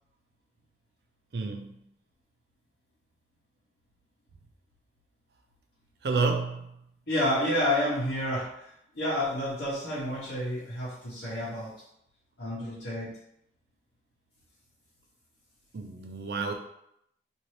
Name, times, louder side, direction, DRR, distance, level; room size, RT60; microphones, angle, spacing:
voice 1, 1.3-1.8 6.0-6.8 15.7-16.5, right 4 dB, 65° right, 4 dB, 0.4 m, -30 dB
voice 2, 7.1-8.7 8.9-11.7 12.4-13.1, left 1 dB, 80° left, -11 dB, 1.0 m, -29 dB
2.8 x 2.6 x 3.1 m, 0.77 s
head